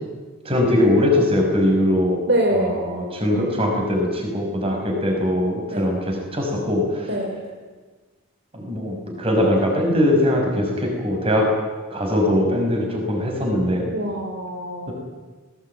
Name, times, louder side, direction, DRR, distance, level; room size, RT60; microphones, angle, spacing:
voice 1, 0.4-2.2 2.5-7.1 8.5-11.5 11.9-13.9 14.9-15.0, left 1 dB, 25° right, 1 dB, 5.8 m, -21 dB
voice 2, 2.3-2.8 5.7-5.9 7.1-7.4 13.9-14.9, right 1 dB, 50° right, 0 dB, 3.4 m, -24 dB
20.5 x 19.0 x 9.1 m, 1.3 s
head